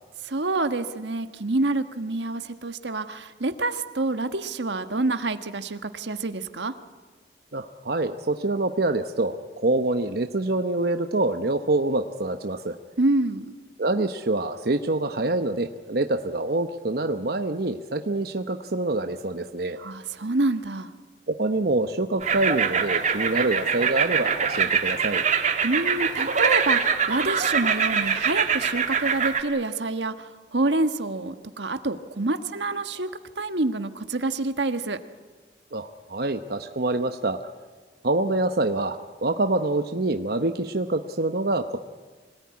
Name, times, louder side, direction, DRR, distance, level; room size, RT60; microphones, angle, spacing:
voice 1, 0.2-6.7 13.0-13.5 19.8-20.9 25.6-33.1 33.4-35.0, right 2 dB, 85° right, 9 dB, 1.4 m, -27 dB
voice 2, 7.5-12.8 13.8-19.8 21.3-25.2 35.7-37.4 38.0-41.8, right 2 dB, 60° right, 7 dB, 1.0 m, -26 dB
sound 1, 22.2-29.4, right 6 dB, 45° right, 1.9 m, -24 dB
25.5 x 18.5 x 9.6 m, 1.4 s
head